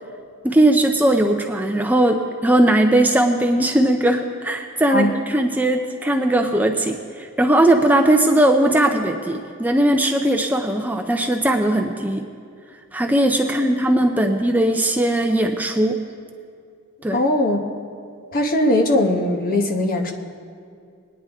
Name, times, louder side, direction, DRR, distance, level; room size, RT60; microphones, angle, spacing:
voice 1, 0.4-12.2 12.9-16.0 17.0-17.2, right 1 dB, 10° right, 4 dB, 0.4 m, -19 dB
voice 2, 17.1-17.6 18.3-20.1, left 1 dB, 40° left, 2 dB, 1.0 m, -19 dB
21.0 x 9.7 x 3.5 m, 2.3 s
head